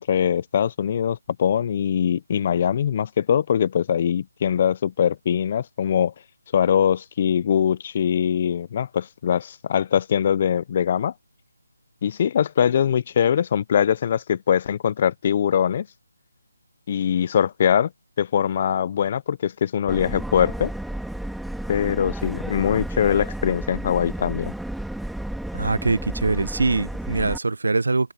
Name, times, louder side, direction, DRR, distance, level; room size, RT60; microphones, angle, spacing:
voice 1, 0.0-6.1 6.5-11.1 12.0-15.9 16.9-17.9 18.2-20.7 21.7-24.5, left 8 dB, 30° left, 0.5 m, -22 dB
Subway metro underground, 19.9-27.4, right 1 dB, ahead, 2.4 m, -32 dB
voice 2, 25.5-28.1, right 3 dB, 75° right, 0.7 m, -23 dB
open air
figure-of-eight pair, 165°, 0 cm